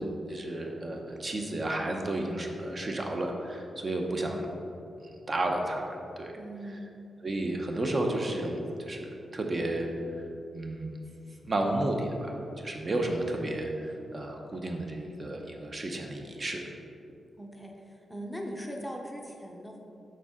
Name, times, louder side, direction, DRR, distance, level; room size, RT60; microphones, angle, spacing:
voice 1, 0.0-4.5 5.0-5.9 6.2-6.4 7.2-9.9 10.5-11.0 11.4-16.6, right 1 dB, 35° right, 2 dB, 0.8 m, -32 dB
voice 2, 6.4-7.0 17.4-19.8, equal, ahead, 1 dB, 0.7 m, -40 dB
6.8 x 5.2 x 3.7 m, 2.7 s
wide cardioid pair, 120°, 0 cm